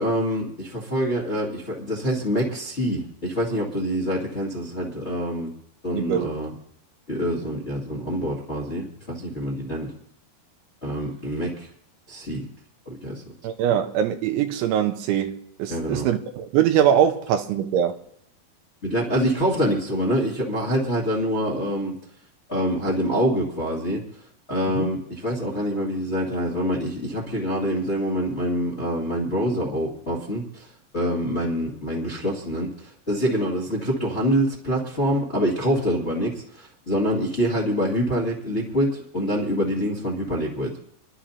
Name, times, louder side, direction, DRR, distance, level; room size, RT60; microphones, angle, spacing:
voice 1, 0.0-5.5 5.8-6.5 7.1-9.9 10.8-11.7 12.1-12.4 12.8-13.2 15.7-16.1 18.8-21.9 22.5-24.0 24.5-30.7 30.9-40.7, equal, 35° left, 1.0 m, -25 dB
voice 2, 5.9-6.3 13.4-18.0 24.8-24.9, right 9 dB, 85° right, 3.2 m, -22 dB
30.0 x 11.5 x 2.9 m
omnidirectional pair, 5.3 m